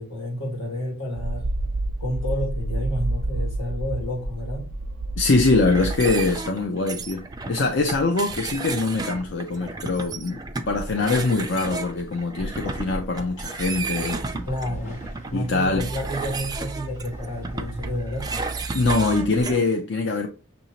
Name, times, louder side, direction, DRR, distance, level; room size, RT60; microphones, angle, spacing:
voice 1, 0.0-1.5 2.0-4.7 14.5-18.3, left 1 dB, 85° left, 1.7 m, -30 dB
sound 1, 1.2-6.5, right 2 dB, 70° right, 0.5 m, -29 dB
voice 2, 5.2-14.2 15.3-15.9 18.7-20.3, left 3 dB, 60° left, 0.6 m, -23 dB
sound 2, 5.7-19.6, right 3 dB, 20° right, 0.4 m, -33 dB
sound 3, 13.7-19.3, right 2 dB, 35° left, 0.9 m, -37 dB
6.3 x 2.7 x 2.9 m
head